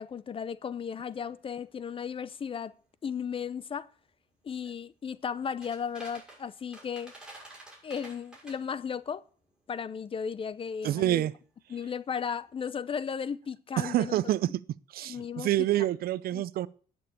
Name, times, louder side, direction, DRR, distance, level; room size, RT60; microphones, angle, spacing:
voice 1, 0.0-2.7 3.0-3.9 4.4-7.1 7.8-9.2 9.7-11.3 11.7-14.2 15.1-15.7 16.3-16.4, left 7 dB, 30° left, 0.6 m, -35 dB
sound 1, 1.0-12.6, right 1 dB, 5° right, 6.5 m, -54 dB
voice 2, 10.8-11.3 13.8-14.5 14.9-16.7, right 14 dB, 60° right, 0.6 m, -27 dB
10.5 x 7.1 x 8.5 m
cardioid pair, 110°, 17 cm